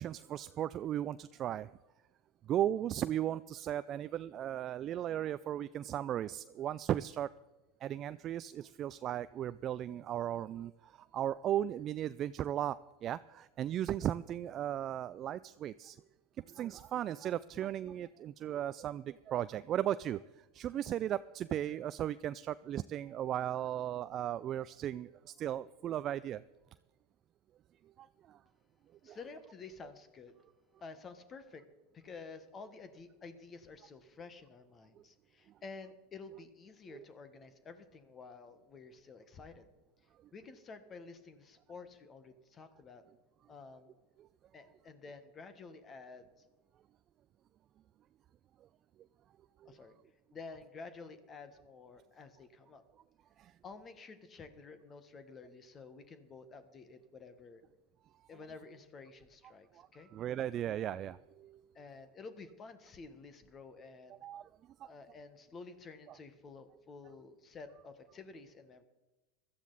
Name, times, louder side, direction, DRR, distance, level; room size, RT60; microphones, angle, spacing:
voice 1, 0.0-1.7 2.5-7.3 7.8-12.8 13.0-16.0 16.5-20.2 20.5-26.4 28.0-28.4 29.1-29.2 53.4-53.5 59.8-59.9 60.1-61.6 64.2-64.4 64.8-64.9, right 11 dB, 40° right, 14 dB, 0.4 m, -36 dB
voice 2, 29.0-30.3 30.8-31.6 31.9-39.7 40.3-43.0 43.5-44.0 44.5-46.3 49.6-50.0 50.3-52.8 53.6-57.6 58.3-60.1 61.7-64.3 64.8-68.8, left 4 dB, 30° left, 11 dB, 1.5 m, -51 dB
16.5 x 12.5 x 4.1 m, 1.1 s
hypercardioid pair, 95°, 0 cm